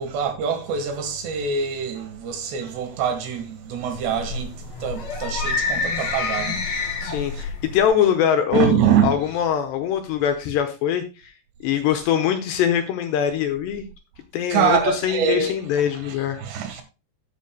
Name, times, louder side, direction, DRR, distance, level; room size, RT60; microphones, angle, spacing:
voice 1, 0.0-7.4 8.5-9.1 14.5-16.8, right 7 dB, 70° right, 3.4 m, -25 dB
sound 1, 3.9-7.9, left 4 dB, 55° left, 3.7 m, -28 dB
voice 2, 7.0-11.0 11.6-13.9 14.3-16.4, left 9 dB, 75° left, 2.7 m, -22 dB
14.0 x 8.3 x 2.2 m
omnidirectional pair, 5.6 m